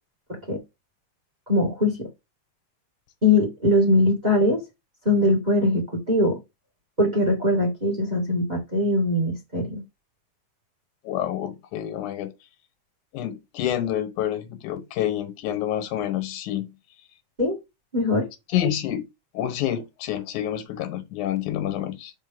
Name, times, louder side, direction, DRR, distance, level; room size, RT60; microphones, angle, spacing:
voice 1, 1.5-2.1 3.2-4.6 5.0-6.4 7.0-9.8 17.4-17.6 17.9-18.3, left 1 dB, 15° right, 1.9 m, -21 dB
voice 2, 11.0-12.3 13.1-16.7 18.5-19.1 19.3-22.1, left 11 dB, 90° left, 2.5 m, -28 dB
6.4 x 4.7 x 3.6 m
omnidirectional pair, 3.5 m